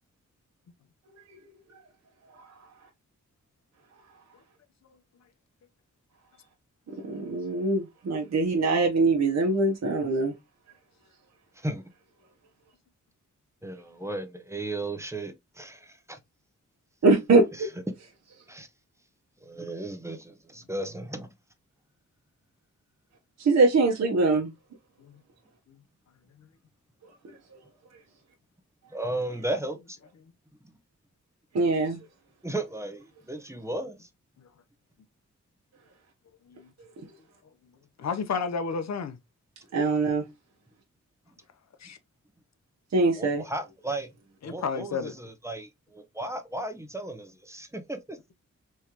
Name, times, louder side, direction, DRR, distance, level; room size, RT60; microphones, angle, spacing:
voice 1, 7.0-10.3 17.0-17.7 23.4-24.5 31.5-32.0 39.7-40.2 42.9-43.4, right 3 dB, 60° right, 0.9 m, -23 dB
voice 2, 13.6-16.2 17.5-17.7 18.5-18.7 19.4-21.3 28.9-30.0 30.6-30.7 32.4-34.1 43.2-44.1 44.4-48.2, right 2 dB, 10° right, 0.7 m, -35 dB
voice 3, 38.0-39.2 41.8-42.0 44.4-45.2, left 5 dB, 60° left, 0.7 m, -32 dB
3.6 x 3.1 x 2.8 m
cardioid pair, 80°, 31 cm